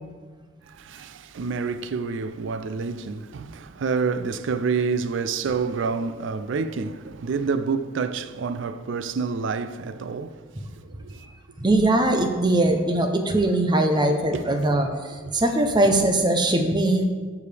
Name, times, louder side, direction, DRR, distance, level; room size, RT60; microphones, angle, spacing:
voice 1, 0.7-10.4 10.8-11.3 14.3-14.5 15.2-15.4, right 5 dB, 65° right, 0.4 m, -28 dB
voice 2, 11.6-17.1, right 1 dB, 20° right, 0.7 m, -21 dB
13.5 x 4.8 x 3.3 m
head